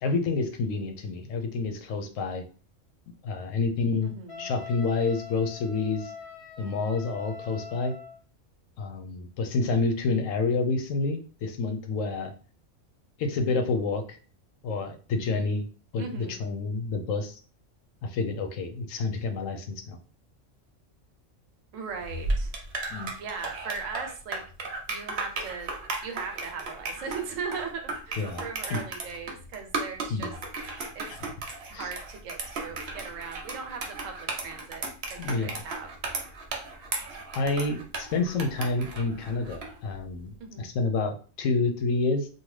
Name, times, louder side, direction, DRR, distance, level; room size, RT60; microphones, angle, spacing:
voice 1, 0.0-2.4 3.2-4.1 4.4-6.1 6.6-7.9 8.8-12.3 13.2-14.2 14.6-15.7 15.9-17.4 18.0-20.0 22.9-23.1 28.2-28.4 28.7-28.8 30.1-30.3 31.1-31.2 31.7-31.9 35.2-35.6 37.3-42.3, left 3 dB, 85° left, 5 dB, 1.0 m, -28 dB
voice 2, 4.0-4.5 16.0-16.5 21.7-22.5 23.2-24.4 24.9-25.7 26.0-30.3 30.9-31.1 31.7-36.3 37.0-37.1 40.4-40.7, right 5 dB, 85° right, 4 dB, 1.1 m, -38 dB
Wind instrument woodwind instrument, 4.3-8.2, left 6 dB, 50° left, 0.9 m, -43 dB
sound 1, 22.0-39.8, right 3 dB, 60° right, 0.9 m, -35 dB
2.7 x 2.3 x 3.1 m, 0.39 s
omnidirectional pair, 1.3 m